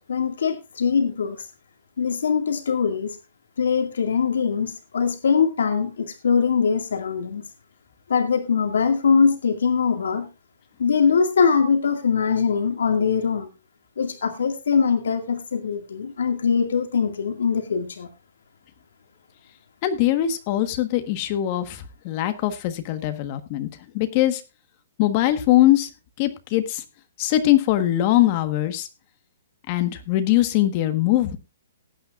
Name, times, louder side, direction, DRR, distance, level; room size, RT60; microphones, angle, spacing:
voice 1, 0.1-1.5 2.0-3.2 3.6-7.5 8.1-10.3 10.8-13.5 14.0-18.1, left 6 dB, 80° left, 6 dB, 2.0 m, -22 dB
voice 2, 19.8-23.7 23.9-24.4 25.0-25.9 26.2-26.8 27.2-28.9 29.7-31.4, left 14 dB, 30° left, 9 dB, 1.3 m, -21 dB
18.5 x 9.0 x 2.5 m, 0.28 s
hypercardioid pair, 170°, 0 cm